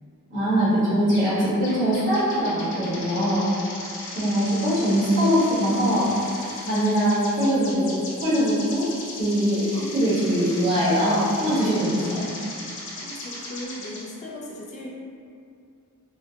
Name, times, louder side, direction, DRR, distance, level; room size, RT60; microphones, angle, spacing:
voice 1, 0.3-3.4 4.1-6.1 6.6-8.8 9.2-12.3, equal, 55° right, -11 dB, 1.4 m, -22 dB
sound 1, 1.1-1.4 1.6-14.0, left 2 dB, 60° left, 0.8 m, -37 dB
voice 2, 13.0-14.9, left 1 dB, 30° left, -4 dB, 0.4 m, -37 dB
3.7 x 2.2 x 2.7 m, 2.4 s
head